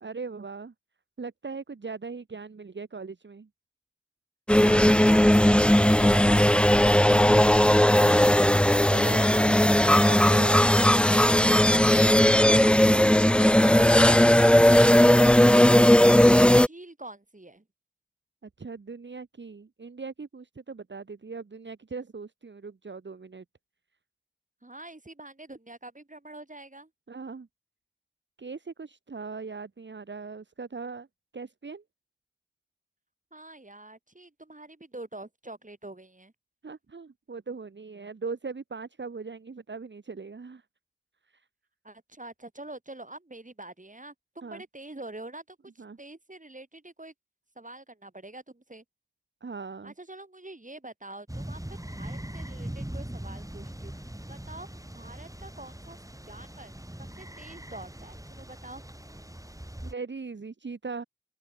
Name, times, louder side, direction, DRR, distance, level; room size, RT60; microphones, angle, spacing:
voice 1, 0.0-0.7 1.2-3.5 7.9-10.6 18.4-23.4 27.1-27.5 28.4-31.1 31.3-31.8 36.6-40.6 41.3-41.4 44.4-44.6 45.8-46.0 49.4-49.9 59.8-61.0, right 4 dB, 70° right, 0.9 m, -39 dB
sound 1, 4.5-16.7, left 1 dB, 5° left, 0.5 m, -18 dB
voice 2, 4.6-7.7 16.6-17.7 24.6-26.9 33.3-36.3 41.8-47.1 47.6-48.8 49.8-56.7 57.0-58.9, right 2 dB, 40° right, 3.8 m, -45 dB
sound 2, 51.3-59.9, right 1 dB, 15° right, 4.6 m, -41 dB
open air
wide cardioid pair, 40°, 20 cm